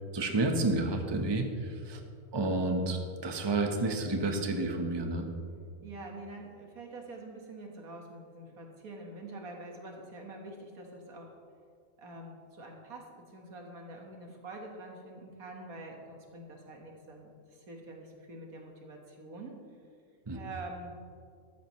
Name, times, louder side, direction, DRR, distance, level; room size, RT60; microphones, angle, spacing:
voice 1, 0.1-2.0 2.3-5.3 20.3-20.4, right 2 dB, 20° right, 3 dB, 0.9 m, -30 dB
voice 2, 5.8-11.4 12.0-19.5 20.3-21.0, right 2 dB, 80° right, 1 dB, 2.0 m, -46 dB
14.0 x 12.5 x 3.1 m, 2.2 s
omnidirectional pair, 1.5 m